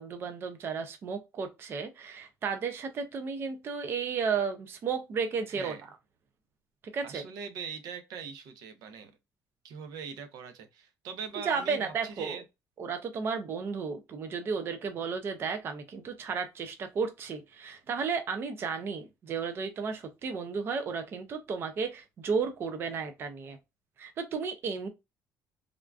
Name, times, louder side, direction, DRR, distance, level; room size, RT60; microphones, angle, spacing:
voice 1, 0.0-5.8 6.9-7.2 11.5-12.4 12.8-23.6 24.0-24.9, right 5 dB, 35° right, 0.4 m, -33 dB
voice 2, 5.5-5.8 7.0-9.1 9.6-12.4, right 6 dB, 80° right, 0.6 m, -41 dB
3.6 x 2.3 x 2.3 m
cardioid pair, 160°, 7 cm